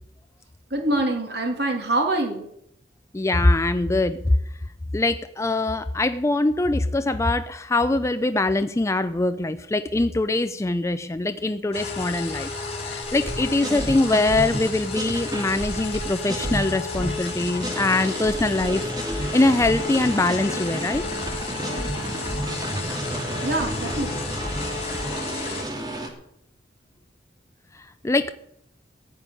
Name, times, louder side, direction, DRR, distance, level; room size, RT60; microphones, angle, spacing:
voice 1, 0.7-2.4 23.4-24.2, right 2 dB, 65° right, 3 dB, 2.8 m, -25 dB
voice 2, 3.1-4.4 4.9-12.5 12.8-21.1 27.7-28.3, left 2 dB, 15° left, 10 dB, 0.4 m, -23 dB
sound 1, 11.7-25.6, left 3 dB, 35° left, 3.3 m, -32 dB
sound 2, 13.0-26.1, right 1 dB, 20° right, 2.2 m, -31 dB
15.5 x 5.3 x 9.7 m, 0.74 s
head